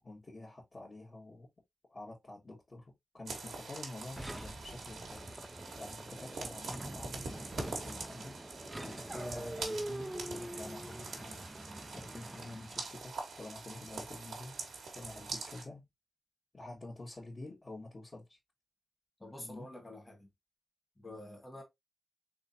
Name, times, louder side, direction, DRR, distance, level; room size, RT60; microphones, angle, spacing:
voice 1, 0.0-1.5 1.9-8.3 8.8-11.4 11.9-14.6 14.9-15.8 16.5-18.4 19.4-19.7, left 2 dB, 40° left, 1.6 m, -48 dB
sound 1, 3.3-15.6, right 4 dB, 90° right, 1.2 m, -44 dB
sound 2, 4.2-12.9, right 1 dB, 15° right, 0.5 m, -44 dB
voice 2, 19.2-20.3 21.0-21.6, left 1 dB, 20° left, 1.6 m, -48 dB
3.7 x 3.3 x 2.6 m
cardioid pair, 60°, 0 cm